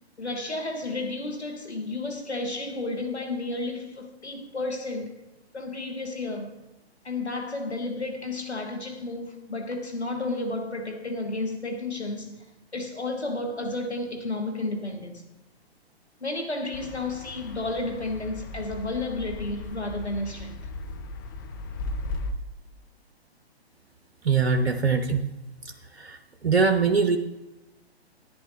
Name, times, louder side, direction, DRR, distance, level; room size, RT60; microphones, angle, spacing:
voice 1, 0.2-5.1 5.5-6.5 7.0-12.4 12.7-15.2 16.2-20.6, left 2 dB, 85° left, 1.3 m, -32 dB
sound 1, 16.7-22.3, left 2 dB, 20° left, 0.5 m, -37 dB
voice 2, 24.2-25.3 26.0-26.2 26.4-27.2, right 5 dB, 70° right, 0.8 m, -22 dB
11.0 x 10.5 x 3.2 m
figure-of-eight pair, 125°, 32 cm